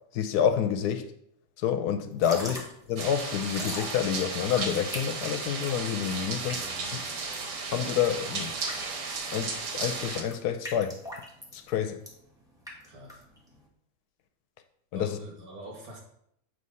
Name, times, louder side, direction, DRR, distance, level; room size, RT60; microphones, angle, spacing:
voice 1, 0.1-1.1 1.6-2.6 2.9-6.6 6.9-7.0 7.7-8.5 9.3-10.9 11.5-12.0 14.9-15.2, left 8 dB, 75° left, 1.1 m, -28 dB
Drip / Trickle dribble, 2.1-13.7, left 1 dB, ahead, 1.3 m, -43 dB
sound 1, 3.0-10.2, right 4 dB, 85° right, 1.6 m, -34 dB
voice 2, 6.3-7.0 12.8-13.3 14.9-16.0, right 1 dB, 60° right, 2.2 m, -46 dB
7.9 x 3.0 x 5.4 m
omnidirectional pair, 1.8 m